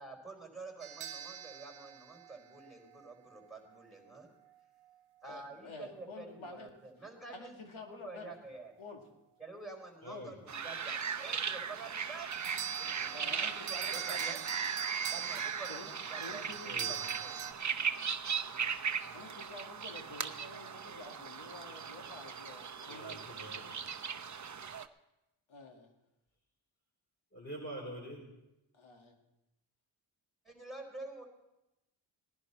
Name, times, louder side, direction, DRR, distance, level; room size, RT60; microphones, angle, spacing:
voice 1, 0.0-4.3 5.2-7.5 7.9-8.7 9.4-12.3 12.8-14.4 15.1-17.3 18.9-19.2 30.4-31.2, right 3 dB, ahead, 2 dB, 4.5 m, -49 dB
sound 1, 0.8-3.1 12.3-17.5, right 9 dB, 85° right, 0.8 m, -42 dB
voice 2, 5.3-6.8 7.3-8.3 8.8-9.1 10.1-10.3 13.1-14.4 15.7-15.9 16.2-17.0 19.1-23.2 25.5-25.9 28.7-29.2, left 3 dB, 75° left, 2 dB, 2.4 m, -49 dB
voice 3, 10.0-10.4 16.6-17.0 22.9-23.8 27.3-28.3, right 1 dB, 25° left, -5 dB, 4.3 m, -45 dB
sound 2, 10.5-24.9, right 6 dB, 35° right, 0.8 m, -38 dB
18.5 x 11.0 x 4.4 m, 0.93 s
cardioid pair, 50°, 49 cm